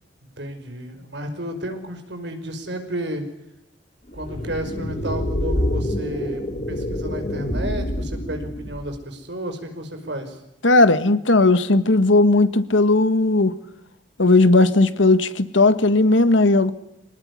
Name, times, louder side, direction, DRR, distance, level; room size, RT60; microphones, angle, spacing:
voice 1, 0.4-3.3 4.1-10.4, right 1 dB, 65° right, 6 dB, 5.4 m, -32 dB
sound 1, 4.1-9.0, left 1 dB, 40° left, 2.2 m, -27 dB
voice 2, 10.6-13.5 14.2-16.7, left 2 dB, 85° left, 12 dB, 1.7 m, -16 dB
25.0 x 19.0 x 9.8 m, 0.86 s
head